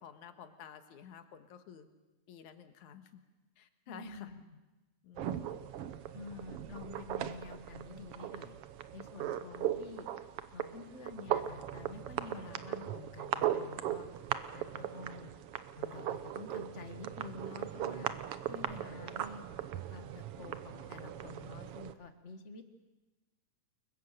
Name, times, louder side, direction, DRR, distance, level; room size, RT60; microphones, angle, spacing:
voice 1, 0.0-1.9 2.3-3.2 3.6-4.3 5.0-5.8, left 8 dB, 70° left, 9 dB, 2.8 m, -52 dB
voice 2, 3.9-4.6 6.1-8.6 8.9-10.1 10.5-14.1 14.5-15.3 15.7-18.1 18.5-19.4 19.7-22.7, left 3 dB, 35° left, 8 dB, 1.3 m, -48 dB
sound 1, 5.2-21.9, right 11 dB, 65° right, 1.5 m, -38 dB
29.0 x 22.0 x 6.7 m, 1.1 s
omnidirectional pair, 3.6 m